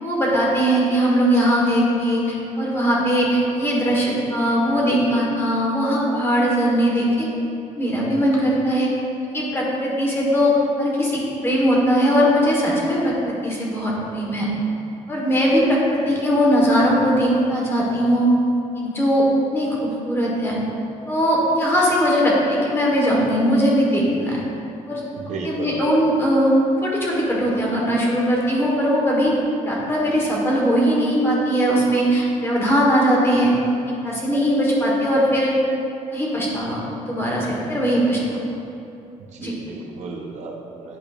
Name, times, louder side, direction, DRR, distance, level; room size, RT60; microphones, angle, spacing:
voice 1, 0.0-7.3 7.7-9.0 9.3-14.5 15.1-18.3 18.8-20.6 21.0-24.4 24.9-25.0 25.4-26.5 26.8-29.4 29.6-33.5 33.9-35.5 36.1-38.4 39.4-39.5, equal, 20° left, -4 dB, 1.4 m, -20 dB
voice 2, 25.1-25.8 39.3-41.0, right 4 dB, 65° right, -1 dB, 0.8 m, -33 dB
10.0 x 5.1 x 2.5 m, 2.8 s
cardioid pair, 155°, 13 cm